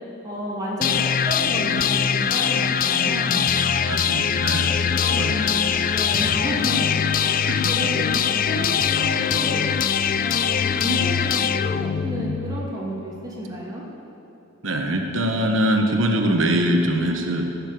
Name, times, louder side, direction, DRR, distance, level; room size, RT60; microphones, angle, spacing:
voice 1, 0.2-3.4 5.0-6.8 7.1-9.7 10.2-13.8, equal, 20° right, -5 dB, 2.7 m, -31 dB
sound 1, 0.8-12.8, left 7 dB, 45° left, 0.4 m, -22 dB
sound 2, 1.7-11.6, left 1 dB, 20° left, 1.0 m, -41 dB
voice 2, 3.8-5.4 7.3-7.9 14.6-17.5, right 1 dB, 85° right, 3 dB, 1.3 m, -23 dB
15.5 x 6.7 x 9.3 m, 2.8 s
head